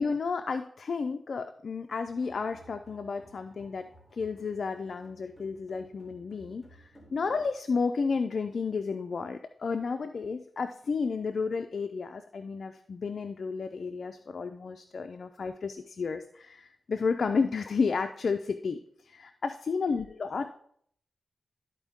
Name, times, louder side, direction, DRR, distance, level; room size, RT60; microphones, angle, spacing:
voice 1, 0.0-18.8 19.0-20.6, left 5 dB, 65° left, 7 dB, 0.4 m, -32 dB
sound 1, 2.0-7.5, right 1 dB, ahead, 2.3 m, -57 dB
12.5 x 4.4 x 3.6 m, 0.64 s
cardioid pair, 80°, 0 cm